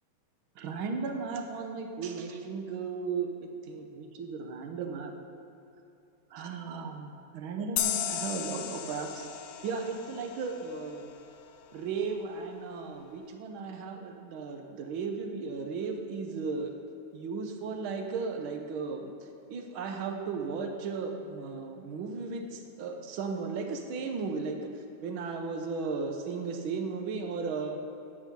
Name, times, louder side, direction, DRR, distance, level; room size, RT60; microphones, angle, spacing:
voice 1, 0.6-5.1 6.3-9.3 9.6-11.1 11.7-16.7 17.1-19.1 19.5-27.8, right 4 dB, 75° right, 4 dB, 1.2 m, -35 dB
sound 1, 7.8-11.1, left 10 dB, 80° left, 2.1 m, -35 dB
12.0 x 8.9 x 5.4 m, 2.8 s
omnidirectional pair, 3.5 m